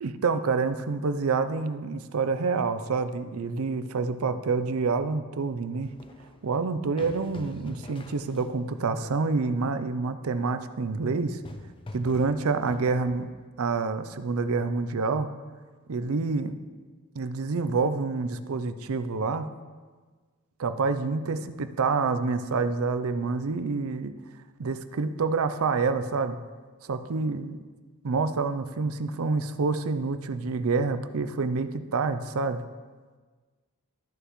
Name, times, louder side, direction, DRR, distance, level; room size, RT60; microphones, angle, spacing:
voice 1, 0.0-5.9 6.4-11.4 11.9-13.3 13.6-15.3 15.9-16.6 17.2-19.5 20.6-24.1 24.6-26.4 26.8-27.6 28.0-32.6, right 4 dB, 65° right, 11 dB, 0.5 m, -27 dB
sound 1, 5.8-8.7 11.1-13.5, left 2 dB, 25° left, 0.5 m, -45 dB
13.5 x 6.6 x 3.1 m, 1.4 s
head